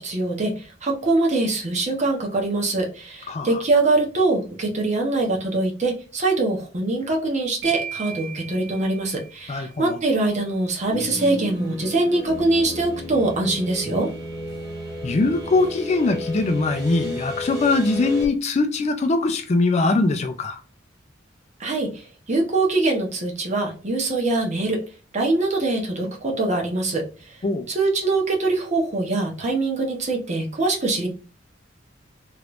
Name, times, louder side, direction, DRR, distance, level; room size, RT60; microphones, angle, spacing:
voice 1, 0.0-14.1 21.6-24.8 25.1-27.4 27.7-31.1, right 2 dB, 40° right, 0.9 m, -23 dB
voice 2, 3.3-3.6 9.5-10.0 15.0-20.6 27.4-27.7, left 3 dB, 35° left, 0.4 m, -22 dB
sound 1, 7.6-9.7, right 6 dB, 65° right, 0.6 m, -36 dB
sound 2, 10.9-18.3, left 1 dB, 15° right, 1.1 m, -33 dB
3.1 x 3.1 x 2.5 m
head